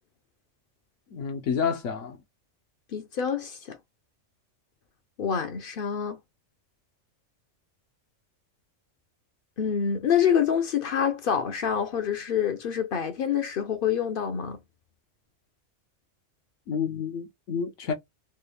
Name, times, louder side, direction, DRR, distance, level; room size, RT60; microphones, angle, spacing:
voice 1, 1.1-2.2 16.7-17.9, left 6 dB, 75° left, 1.0 m, -29 dB
voice 2, 2.9-3.8 5.2-6.2 9.6-14.6, left 8 dB, 55° left, 0.7 m, -26 dB
3.4 x 2.3 x 3.2 m
omnidirectional pair, 1.3 m